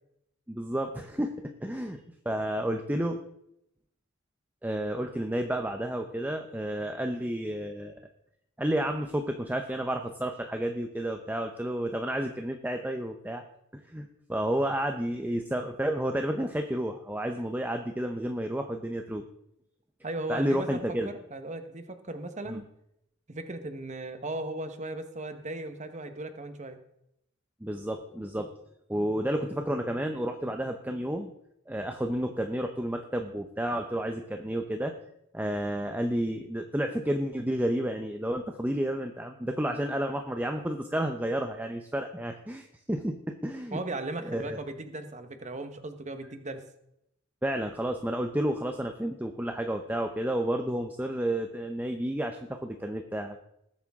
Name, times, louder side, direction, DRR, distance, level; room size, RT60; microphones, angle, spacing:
voice 1, 0.5-1.3 1.6-3.2 4.6-8.0 8.6-13.4 13.7-19.2 20.3-21.1 22.5-22.6 27.6-28.5 28.9-31.3 31.7-34.9 35.3-43.8 44.2-44.6 47.4-53.4, right 1 dB, 10° right, 5 dB, 0.7 m, -31 dB
voice 2, 20.0-22.6 23.3-26.8 43.7-46.6, right 2 dB, 35° right, 8 dB, 1.2 m, -37 dB
20.0 x 8.6 x 3.6 m, 0.78 s
head